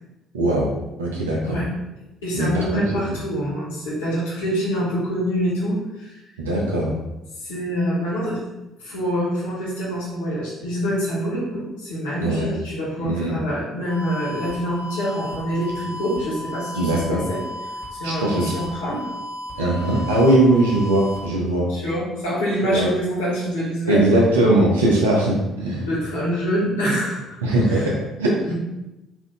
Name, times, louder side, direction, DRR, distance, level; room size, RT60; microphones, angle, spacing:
voice 1, 0.3-0.7 1.0-1.6 2.3-2.8 6.4-6.9 12.2-12.5 13.0-13.4 16.7-17.2 18.0-18.5 19.6-21.7 22.6-22.9 23.9-25.9 27.4-28.4, right 1 dB, 75° right, -2 dB, 0.5 m, -20 dB
voice 2, 2.2-6.2 7.4-8.4 8.8-17.4 17.9-19.1 21.7-24.1 25.8-27.4 27.7-27.9 28.4-28.5, equal, 75° left, -7 dB, 1.2 m, -26 dB
sound 1, 13.9-21.3, left 1 dB, 50° left, 1.2 m, -34 dB
3.5 x 2.6 x 3.4 m, 0.97 s
figure-of-eight pair, 50°, 0 cm